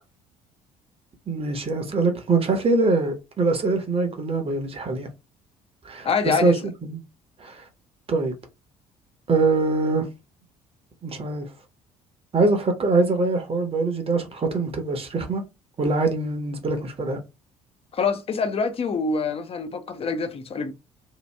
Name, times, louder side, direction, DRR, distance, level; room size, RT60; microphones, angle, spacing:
voice 1, 1.3-5.1 5.8-7.0 7.4-7.6 8.1-8.3 9.3-10.1 11.0-11.5 12.3-15.4 15.8-17.2, right 3 dB, 30° right, 0.9 m, -23 dB
voice 2, 6.0-6.6 17.9-20.7, left 5 dB, 30° left, 0.6 m, -25 dB
2.8 x 2.5 x 3.2 m
figure-of-eight pair, 55°, 19 cm